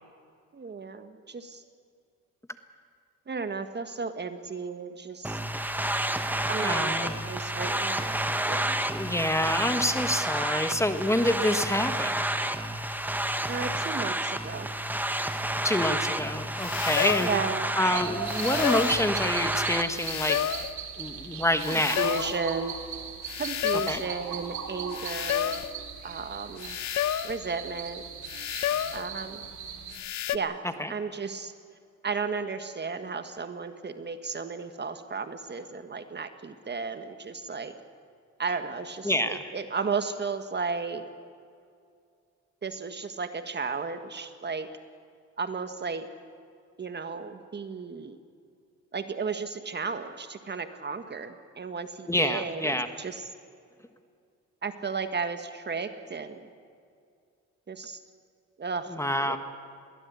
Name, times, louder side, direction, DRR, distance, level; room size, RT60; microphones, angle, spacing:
voice 1, 0.5-1.6 3.3-5.4 6.5-8.1 8.4-8.8 13.5-14.7 17.2-17.7 21.7-22.7 23.4-25.6 26.0-26.8 27.2-28.0 28.9-29.5 30.3-30.6 30.9-31.5 32.0-37.7 38.4-41.0 42.6-44.7 45.4-46.1 46.8-48.2 48.9-53.2 54.6-56.5 57.7-58.0 58.6-59.4, right 5 dB, 35° right, 8 dB, 1.6 m, -34 dB
sound 1, 5.2-19.8, right 1 dB, 5° right, 1.4 m, -30 dB
voice 2, 6.6-7.1 8.9-12.2 15.6-17.3 17.8-20.4 21.0-22.1 23.9-24.0 30.8-30.9 39.0-39.4 52.1-52.9 58.9-59.4, left 1 dB, 10° left, 8 dB, 1.4 m, -27 dB
sound 2, 16.6-17.4 18.3-19.1 19.9-20.8 21.6-22.4 23.3-24.1 24.9-25.7 26.6-27.4 28.3-29.1 29.9-30.4, left 11 dB, 65° left, 0.9 m, -30 dB
sound 3, 17.9-29.9, right 7 dB, 70° right, 3.5 m, -38 dB
22.0 x 17.0 x 8.4 m, 2.3 s
cardioid pair, 90°, 30 cm